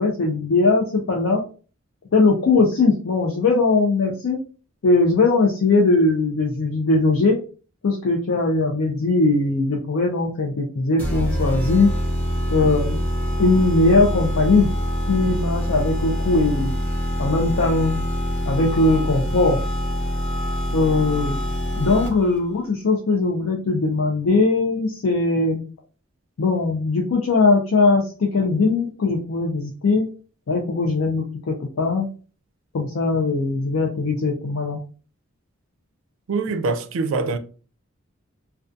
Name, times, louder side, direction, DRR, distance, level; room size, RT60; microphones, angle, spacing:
voice 1, 0.0-1.5 2.1-4.4 4.8-7.4 7.8-11.9 12.5-13.0 13.4-14.7 15.1-16.7 17.2-18.0 18.5-19.6 20.7-21.4 21.7-25.6 26.4-30.1 30.5-32.1 32.7-34.8, left 3 dB, 80° left, 0.5 m, -20 dB
sound 1, 11.0-22.4, equal, 5° left, 0.6 m, -25 dB
voice 2, 36.3-37.4, right 4 dB, 75° right, 0.4 m, -24 dB
2.3 x 2.3 x 2.6 m
head